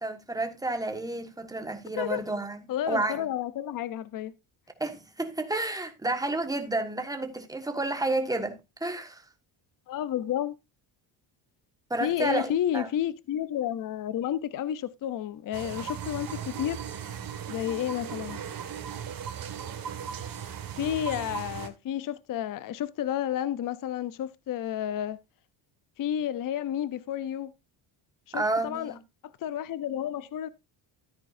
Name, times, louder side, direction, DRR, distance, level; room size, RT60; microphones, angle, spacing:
voice 1, 0.0-3.3 4.8-9.2 11.9-12.9 28.3-29.0, right 2 dB, 10° right, 1.5 m, -31 dB
voice 2, 2.7-4.3 9.9-10.6 12.0-16.8 17.5-18.4 20.8-25.2 26.0-27.5 28.3-28.9 29.2-30.5, left 11 dB, 45° left, 0.6 m, -31 dB
sound 1, 15.5-21.7, right 8 dB, 45° right, 1.8 m, -37 dB
13.5 x 9.1 x 2.6 m
cardioid pair, 145°, 46 cm